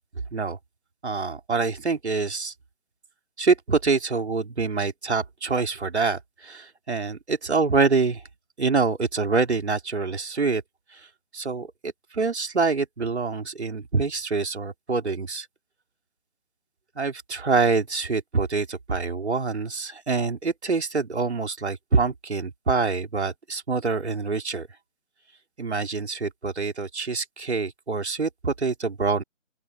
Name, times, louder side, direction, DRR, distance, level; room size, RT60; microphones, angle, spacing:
voice 1, 1.0-2.5 3.4-8.2 8.6-10.6 10.9-11.1 11.3-15.5 17.0-24.7 25.6-29.2, right 4 dB, 70° right, 4.0 m, -26 dB
open air
figure-of-eight pair, 160°, 35 cm